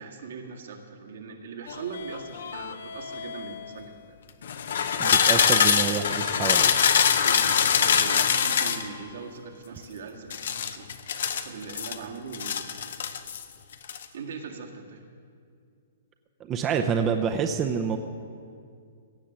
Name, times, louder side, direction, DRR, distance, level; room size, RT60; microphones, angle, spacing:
voice 1, 0.0-4.2 7.2-10.9 11.1-13.0 14.1-15.0, right 5 dB, 75° right, 1 dB, 1.8 m, -41 dB
sound 1, 1.7-3.6 4.4-8.9 10.3-12.0 12.3-13.4 13.7-14.0, left 7 dB, 70° left, 0.8 m, -24 dB
voice 2, 5.0-6.7 16.4-18.0, right 7 dB, 25° right, 5 dB, 0.6 m, -27 dB
16.5 x 6.8 x 7.5 m, 2.3 s
hypercardioid pair, 140°, 0 cm